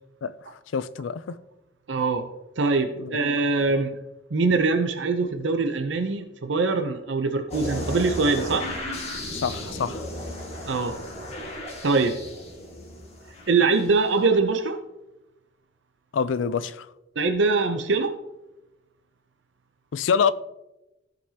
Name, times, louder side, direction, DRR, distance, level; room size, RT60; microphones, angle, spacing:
voice 1, 0.2-1.4 3.0-3.2 9.3-10.1 16.1-16.9 19.9-20.3, left 6 dB, 90° left, 0.4 m, -26 dB
voice 2, 1.9-2.2 2.6-3.9 4.3-8.7 10.7-11.0 11.8-12.2 13.5-14.8 17.2-18.2, right 3 dB, 70° right, 0.7 m, -23 dB
sound 1, 7.5-14.1, left 1 dB, 35° left, 1.8 m, -35 dB
15.5 x 5.2 x 2.8 m
head